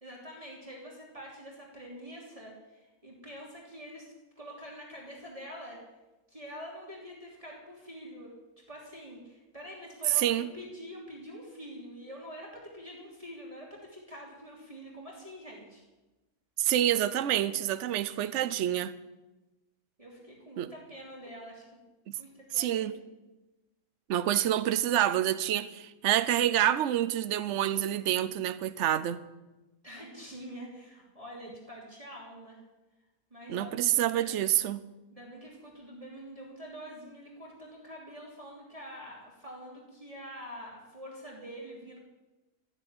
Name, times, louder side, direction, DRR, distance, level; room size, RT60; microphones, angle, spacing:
voice 1, 0.0-4.1 4.4-5.8 6.3-8.3 8.7-15.8 20.0-21.6 22.2-22.9 29.8-32.6 33.3-34.4 35.1-42.0, equal, 20° right, 3.2 m, -46 dB
voice 2, 10.2-10.5 16.6-18.9 20.6-20.7 22.5-22.9 24.1-29.2 33.5-34.8, right 12 dB, 60° right, 0.9 m, -27 dB
14.0 x 8.5 x 9.8 m
omnidirectional pair, 1.6 m